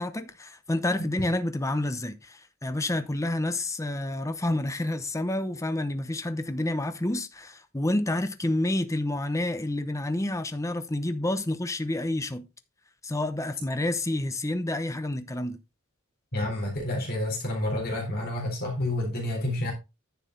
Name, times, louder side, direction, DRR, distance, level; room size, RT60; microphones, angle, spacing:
voice 1, 0.0-12.5 13.0-15.6, left 1 dB, 15° left, 0.8 m, -29 dB
voice 2, 16.3-19.7, left 1 dB, 45° left, 3.9 m, -29 dB
10.5 x 6.6 x 3.8 m
head